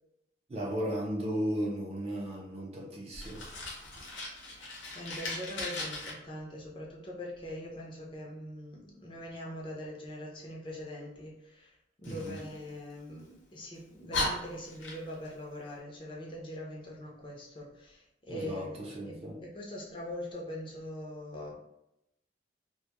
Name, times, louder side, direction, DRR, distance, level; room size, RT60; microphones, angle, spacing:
voice 1, 0.5-3.5 12.1-12.4 18.3-19.4, equal, 35° right, -1 dB, 0.4 m, -35 dB
Fire, 3.1-6.1 12.0-13.3 13.7-13.8 14.1-15.3, left 2 dB, 85° left, 0.7 m, -37 dB
voice 2, 4.9-18.8 19.0-21.5, left 1 dB, 25° left, -3 dB, 0.5 m, -42 dB
2.2 x 2.1 x 2.8 m, 0.85 s
head